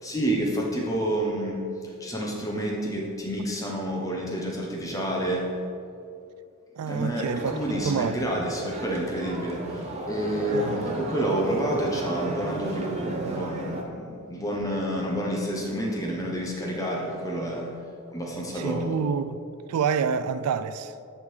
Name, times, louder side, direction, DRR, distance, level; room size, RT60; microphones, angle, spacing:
voice 1, 0.0-1.6 2.0-5.4 6.9-17.7 18.1-19.0, right 1 dB, 15° left, 1.0 m, -29 dB
voice 2, 6.8-7.5 7.9-8.4 10.5-10.8 18.5-19.4 19.7-20.9, right 6 dB, 90° right, 0.3 m, -28 dB
sound 1, 7.2-13.8, right 1 dB, 30° right, 0.7 m, -34 dB
9.7 x 3.7 x 4.8 m
head